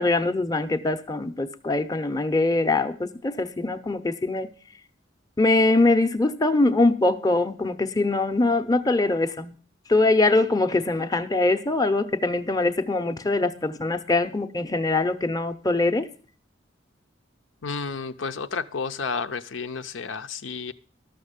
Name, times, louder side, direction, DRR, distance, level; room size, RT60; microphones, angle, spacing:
voice 1, 0.0-4.5 5.4-9.5 9.9-16.1, left 2 dB, 20° left, 0.6 m, -23 dB
voice 2, 17.6-20.7, left 5 dB, 90° left, 0.7 m, -31 dB
13.0 x 6.4 x 8.0 m
head